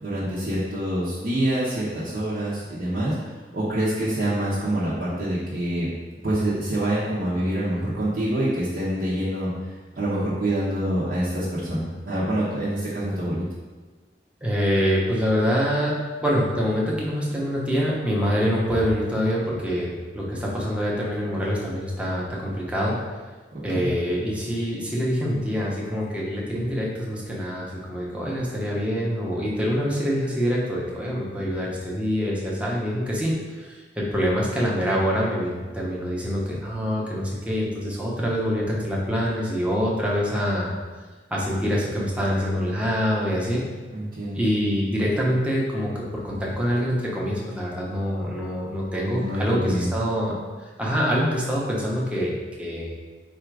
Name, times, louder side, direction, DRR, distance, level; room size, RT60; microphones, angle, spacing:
voice 1, 0.0-3.1 3.5-5.9 6.2-9.5 10.0-13.4 23.7-23.9 43.9-44.4 49.1-49.9, right 1 dB, 55° right, -10 dB, 0.9 m, -26 dB
voice 2, 14.4-16.0 16.2-23.0 23.6-40.7 41.3-43.6 44.3-50.3 50.8-52.9, equal, 5° right, -5 dB, 0.8 m, -25 dB
4.3 x 2.5 x 4.6 m, 1.3 s
head